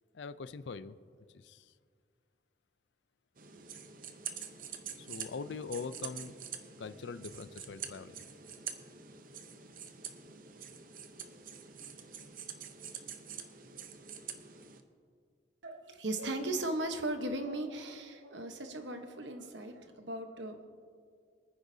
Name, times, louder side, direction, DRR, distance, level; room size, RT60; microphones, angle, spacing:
voice 1, 0.1-1.0 1.3-1.7 5.0-6.3 6.8-8.2, left 5 dB, 75° left, 14 dB, 0.4 m, -42 dB
sound 1, 3.4-14.8, right 7 dB, 45° right, 0.7 m, -46 dB
voice 2, 15.6-20.7, right 1 dB, 75° right, 6 dB, 1.1 m, -37 dB
25.0 x 9.7 x 2.7 m, 2.1 s
head